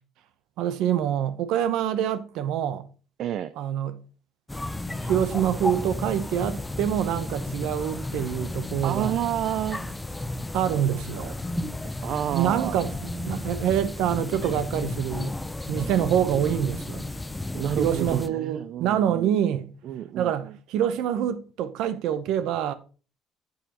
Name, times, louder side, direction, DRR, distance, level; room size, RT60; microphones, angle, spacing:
voice 1, 0.6-2.9 3.6-4.0 5.0-9.1 10.5-11.4 12.3-15.3 15.7-17.0 17.8-19.7 20.1-22.7, right 10 dB, 70° right, 0.9 m, -26 dB
voice 2, 3.2-3.5 8.8-10.0 11.8-12.8 17.5-20.6, right 11 dB, 55° right, 0.4 m, -30 dB
sound 1, 4.5-18.3, left 1 dB, 10° left, 0.4 m, -33 dB
8.9 x 7.2 x 3.0 m
cardioid pair, 135°, 0 cm